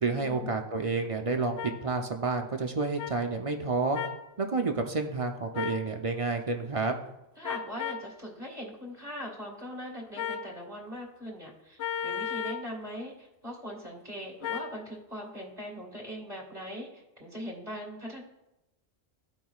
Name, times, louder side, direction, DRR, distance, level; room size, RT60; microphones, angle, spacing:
voice 1, 0.0-4.0 4.4-7.0, right 3 dB, 40° right, 4 dB, 0.5 m, -30 dB
sound 1, 1.6-1.7 3.0-3.1 3.9-4.2 5.5-5.8 7.4-8.1 10.2-10.5 11.8-12.7 14.4-14.7, left 8 dB, 80° left, 0.9 m, -34 dB
voice 2, 7.4-18.2, equal, 20° right, -4 dB, 1.6 m, -41 dB
14.0 x 5.0 x 2.3 m, 0.91 s
omnidirectional pair, 1.1 m